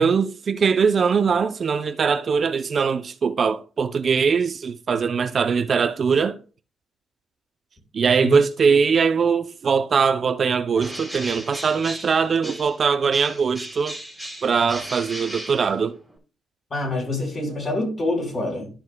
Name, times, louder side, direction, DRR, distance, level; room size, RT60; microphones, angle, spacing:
voice 1, 0.0-6.4 7.9-14.0 14.4-16.0, right 5 dB, 45° right, 0.5 m, -21 dB
Bird, 10.7-12.8 13.1-16.2, right 1 dB, ahead, 2.5 m, -36 dB
voice 2, 16.7-18.7, left 2 dB, 40° left, 4.6 m, -26 dB
12.5 x 5.7 x 2.2 m
cardioid pair, 90°, 0 cm